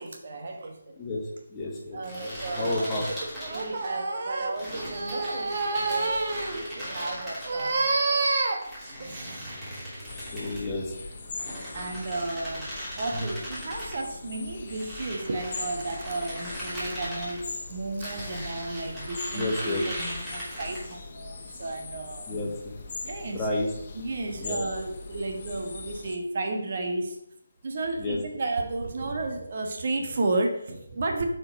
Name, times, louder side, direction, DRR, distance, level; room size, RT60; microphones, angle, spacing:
voice 1, 0.0-1.0 1.9-9.6 11.7-22.3 23.0-23.6 23.9-27.2 27.6-31.2, right 2 dB, 45° right, 3 dB, 1.1 m, -31 dB
voice 2, 1.0-3.1 10.3-10.9 13.1-13.3 19.3-19.8 22.3-22.8 23.3-23.7 24.4-24.6 28.0-28.2, left 2 dB, 15° left, -2 dB, 1.5 m, -31 dB
sound 1, 2.0-3.9 4.5-7.9 8.6-10.7 11.3-14.0 14.7-17.4 18.0-21.0, equal, 10° right, 3.2 m, -38 dB
sound 2, 10.1-26.2, left 4 dB, 35° left, 1.2 m, -41 dB
7.4 x 4.6 x 5.1 m, 0.76 s
figure-of-eight pair, 150°, 0 cm